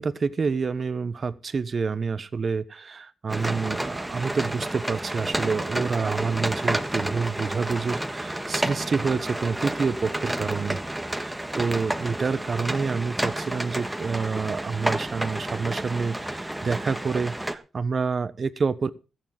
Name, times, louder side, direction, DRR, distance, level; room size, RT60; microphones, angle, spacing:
voice 1, 0.0-10.8 11.1-18.9, right 5 dB, 50° right, 14 dB, 1.1 m, -28 dB
sound 1, 3.3-17.6, right 1 dB, 10° right, 1.5 m, -30 dB
14.0 x 9.7 x 5.1 m, 0.32 s
cardioid pair, 60°, 0 cm